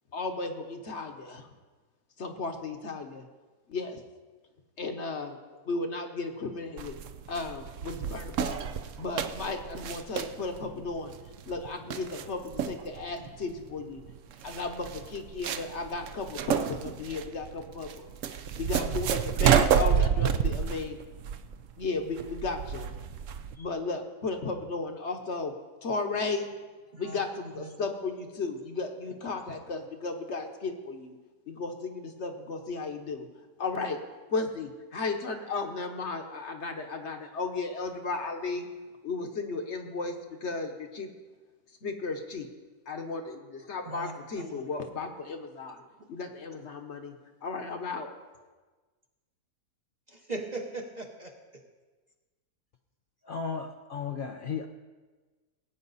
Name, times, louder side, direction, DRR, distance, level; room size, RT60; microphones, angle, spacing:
voice 1, 0.1-1.5 2.2-3.3 3.7-4.0 4.8-7.0 7.3-11.2 11.5-14.0 14.4-21.0 21.8-22.9 23.6-25.5 25.8-26.5 27.0-31.2 31.5-33.3 33.6-34.0 34.3-38.7 39.0-41.1 41.8-42.5 42.9-47.2 47.4-48.1, left 3 dB, 50° left, 5 dB, 1.2 m, -35 dB
sound 1, 6.8-23.6, right 8 dB, 65° right, 0.9 m, -30 dB
voice 2, 43.9-44.6 46.5-46.6 50.1-51.6, right 2 dB, 35° right, 2 dB, 0.9 m, -40 dB
voice 3, 53.2-54.7, left 6 dB, 70° left, 4 dB, 0.5 m, -34 dB
19.0 x 8.6 x 4.1 m, 1.3 s
omnidirectional pair, 1.6 m